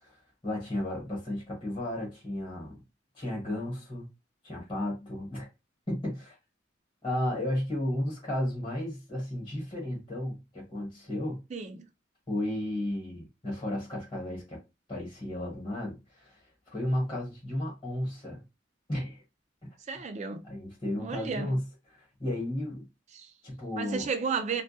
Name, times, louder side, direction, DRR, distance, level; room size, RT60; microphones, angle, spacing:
voice 1, 0.0-2.8 3.1-4.1 4.4-5.5 5.9-6.4 7.0-11.4 12.3-14.6 14.9-18.4 18.9-19.2 20.4-21.6 21.9-22.8 23.4-24.1, left 1 dB, 25° left, 1.1 m, -33 dB
voice 2, 11.5-11.9 19.9-20.4 21.0-21.5 23.1-23.3 23.8-24.6, right 5 dB, 35° right, 0.4 m, -33 dB
2.2 x 2.2 x 2.6 m
head